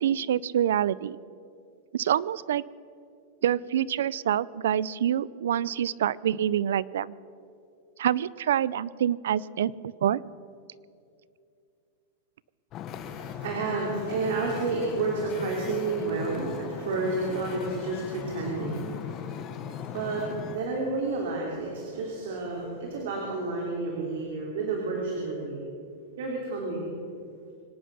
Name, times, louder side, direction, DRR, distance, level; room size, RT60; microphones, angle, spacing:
voice 1, 0.0-1.2 1.9-2.6 3.4-7.1 8.0-10.2, right 10 dB, 85° right, 20 dB, 0.4 m, -26 dB
Wind / Ocean, 12.7-20.6, left 8 dB, 30° left, 0.9 m, -38 dB
voice 2, 13.0-25.6 26.2-26.8, right 3 dB, 65° right, -2 dB, 3.1 m, -31 dB
25.0 x 9.2 x 6.2 m, 2.5 s
supercardioid pair, 160°, 0 cm